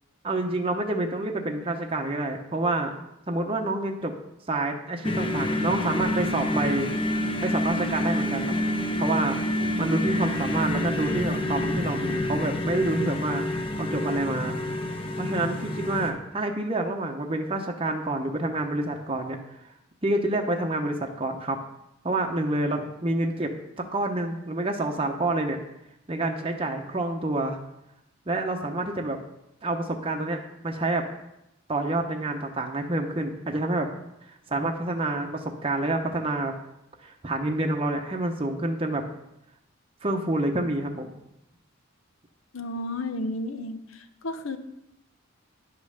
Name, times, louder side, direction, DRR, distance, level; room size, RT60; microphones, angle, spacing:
voice 1, 0.2-2.9 3.3-4.1 4.5-6.9 7.4-8.5 9.0-9.4 9.8-13.5 13.8-14.6 15.2-19.4 20.0-21.6 22.0-23.5 23.8-25.6 26.1-27.6 28.3-29.2 29.6-31.1 31.7-33.9 34.5-36.5 37.0-39.0 40.0-41.1, right 2 dB, 25° right, 2 dB, 0.8 m, -28 dB
sound 1, 5.0-16.1, left 1 dB, 25° left, 0.9 m, -28 dB
voice 2, 42.5-44.6, left 2 dB, 75° left, 8 dB, 0.9 m, -32 dB
10.5 x 5.4 x 6.3 m, 0.85 s
head